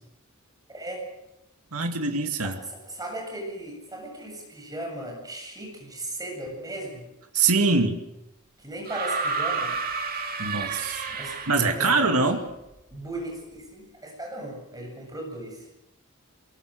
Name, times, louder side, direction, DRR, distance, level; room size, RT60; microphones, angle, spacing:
voice 1, 0.7-1.0 2.4-2.6 2.9-7.0 8.6-9.7 11.1-11.4 11.7-12.4 12.9-15.6, right 1 dB, 15° right, 1 dB, 7.9 m, -37 dB
voice 2, 1.7-2.6 7.3-8.0 10.4-11.1 11.5-12.4, right 3 dB, 80° right, 5 dB, 2.3 m, -23 dB
sound 1, 8.8-11.9 13.2-13.3, right 4 dB, 45° right, 2.3 m, -30 dB
23.5 x 21.5 x 6.6 m, 0.89 s
head